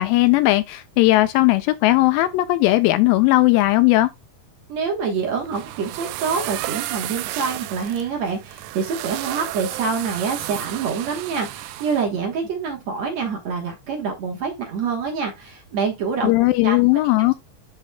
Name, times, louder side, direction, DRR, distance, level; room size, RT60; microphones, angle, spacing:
voice 1, 0.0-4.1 16.2-17.3, left 18 dB, 80° left, 2.2 m, -17 dB
voice 2, 4.7-16.3 16.6-16.8, right 5 dB, 60° right, 2.0 m, -26 dB
sound 1, 5.2-12.0, right 16 dB, 80° right, 2.0 m, -32 dB
11.5 x 4.1 x 2.2 m
omnidirectional pair, 4.2 m